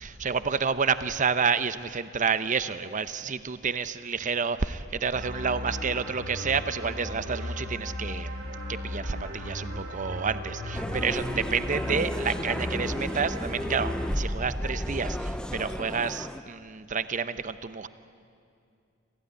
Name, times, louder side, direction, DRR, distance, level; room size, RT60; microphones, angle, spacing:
voice 1, 0.0-8.3 8.7-17.9, right 5 dB, 40° right, 13 dB, 0.7 m, -29 dB
sound 1, 5.1-14.0, equal, 55° right, 4.6 m, -36 dB
sound 2, 10.7-16.4, equal, 5° left, 0.6 m, -33 dB
26.5 x 15.5 x 9.6 m, 2.4 s
head